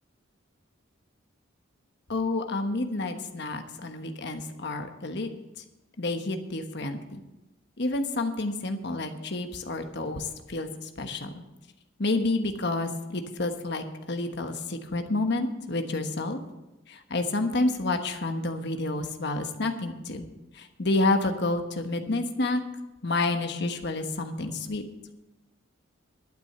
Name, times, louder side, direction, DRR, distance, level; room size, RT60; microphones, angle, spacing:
voice 1, 2.1-5.3 6.0-7.2 7.8-11.4 12.0-16.4 16.9-20.2 20.6-22.6 23.0-24.8, left 2 dB, 55° left, 6 dB, 1.3 m, -29 dB
11.5 x 9.1 x 6.8 m, 1.0 s
head